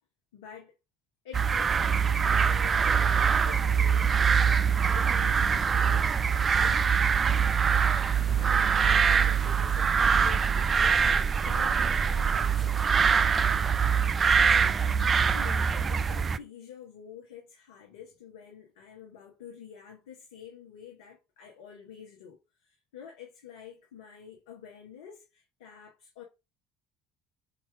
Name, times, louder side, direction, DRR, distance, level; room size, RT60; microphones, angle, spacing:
voice 1, 0.3-0.7 1.2-3.0 3.4-6.9 8.3-13.2 14.5-26.2, left 8 dB, 80° left, 1.5 m, -48 dB
sound 1, 1.3-16.4, right 6 dB, 35° right, 0.5 m, -24 dB
7.4 x 3.0 x 4.9 m
hypercardioid pair, 65°, 0 cm